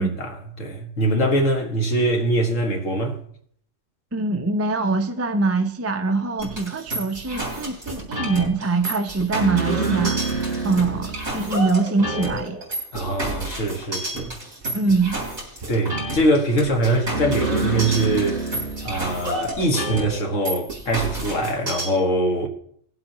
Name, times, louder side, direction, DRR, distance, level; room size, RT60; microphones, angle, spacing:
voice 1, 0.0-3.2 12.9-14.3 15.7-18.4 18.8-22.5, right 1 dB, 75° left, 2.0 m, -23 dB
voice 2, 4.1-12.6 14.7-15.2, right 3 dB, 15° right, 0.5 m, -23 dB
sound 1, 6.4-21.9, right 2 dB, 55° right, 3.8 m, -28 dB
19.5 x 7.7 x 3.0 m
omnidirectional pair, 1.3 m